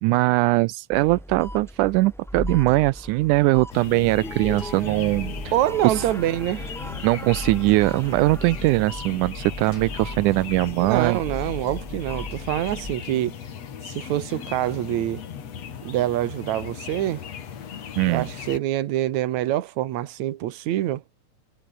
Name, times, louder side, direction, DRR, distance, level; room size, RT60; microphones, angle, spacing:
voice 1, 0.0-5.3 5.8-6.0 7.0-11.2 18.0-18.3, right 20 dB, 85° right, 2.1 m, -21 dB
sound 1, 0.9-13.0, equal, ahead, 0.9 m, -37 dB
sound 2, 3.7-18.6, left 8 dB, 55° left, 3.1 m, -38 dB
sound 3, 4.6-8.4 9.7-13.3 14.3-18.4, left 3 dB, 40° left, 5.6 m, -52 dB
voice 2, 5.5-6.7 10.8-13.4 13.8-15.2 15.8-17.2 18.1-21.0, right 13 dB, 70° right, 2.5 m, -25 dB
omnidirectional pair, 3.5 m